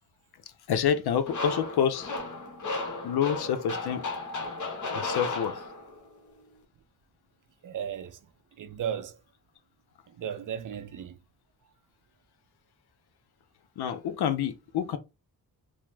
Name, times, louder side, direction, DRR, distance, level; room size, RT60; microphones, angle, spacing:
voice 1, 0.7-2.1 3.0-4.1 4.9-5.6 13.8-15.0, left 8 dB, 80° left, 0.6 m, -27 dB
sound 1, 1.3-6.1, left 3 dB, 50° left, 1.0 m, -34 dB
voice 2, 7.6-8.2 8.6-9.2 10.1-11.2, right 8 dB, 55° right, 0.5 m, -35 dB
2.9 x 2.0 x 3.2 m
cardioid pair, 85°, 37 cm